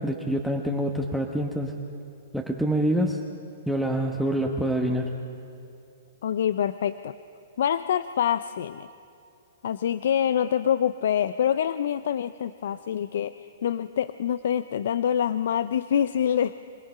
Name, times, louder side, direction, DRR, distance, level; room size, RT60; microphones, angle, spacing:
voice 1, 0.0-1.8 2.3-3.2 3.7-5.1, equal, ahead, 1 dB, 1.1 m, -26 dB
voice 2, 6.2-7.1 7.6-8.9 9.6-16.5, left 9 dB, 70° left, 14 dB, 0.4 m, -26 dB
25.5 x 18.0 x 5.6 m, 2.6 s
hypercardioid pair, 125°, 0 cm